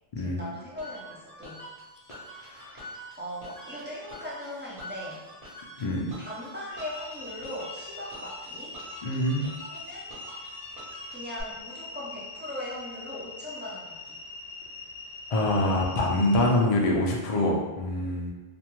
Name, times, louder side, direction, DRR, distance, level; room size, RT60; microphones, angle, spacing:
voice 1, 0.2-1.6 2.8-2.9 3.2-5.2 6.2-8.7 9.7-10.1 11.1-14.2, left 1 dB, 15° right, -7 dB, 0.4 m, -39 dB
sound 1, 0.8-11.4, right 1 dB, 65° right, 1.1 m, -46 dB
voice 2, 2.4-2.7 5.8-6.1 9.0-9.5 15.3-18.3, left 1 dB, 50° left, -2 dB, 0.4 m, -25 dB
sound 2, 6.7-16.6, left 3 dB, 80° left, 0.8 m, -42 dB
2.4 x 2.2 x 2.9 m, 1.2 s
omnidirectional pair, 1.0 m